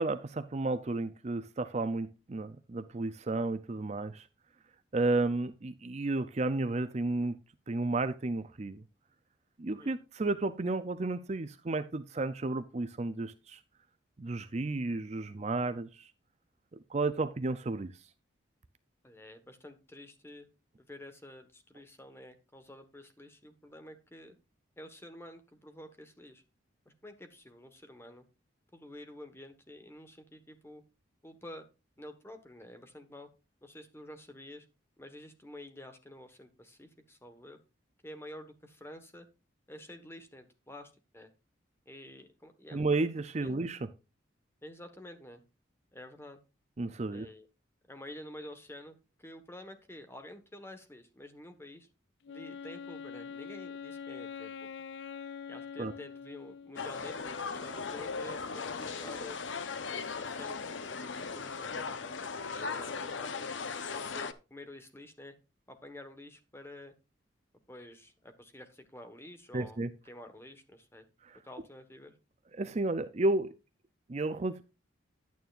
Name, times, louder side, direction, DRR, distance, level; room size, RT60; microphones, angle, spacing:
voice 1, 0.0-4.3 4.9-7.4 7.7-8.8 9.6-13.6 14.2-16.1 16.9-17.9 42.7-43.8 46.8-47.3 55.8-55.9 69.5-69.9 71.2-71.4 72.5-73.5 74.1-74.6, right 2 dB, 35° right, 12 dB, 0.5 m, -32 dB
voice 2, 19.0-20.5 20.9-24.4 24.8-26.4 26.8-28.3 28.7-30.8 31.2-31.6 32.0-33.3 33.6-34.7 35.0-37.6 38.0-39.3 39.7-41.3 41.8-42.8 43.4-43.6 44.6-45.4 45.9-46.4 47.1-47.5 47.9-51.9 52.3-54.7 55.5-59.4 59.9-65.3 65.7-66.9 67.7-71.1 71.4-72.1, left 1 dB, 15° left, 7 dB, 1.4 m, -49 dB
Wind instrument woodwind instrument, 52.2-57.1, left 6 dB, 65° left, 0.4 m, -44 dB
sound 1, 56.8-64.3, left 5 dB, 80° left, 0.8 m, -38 dB
11.0 x 9.3 x 2.5 m, 0.29 s
head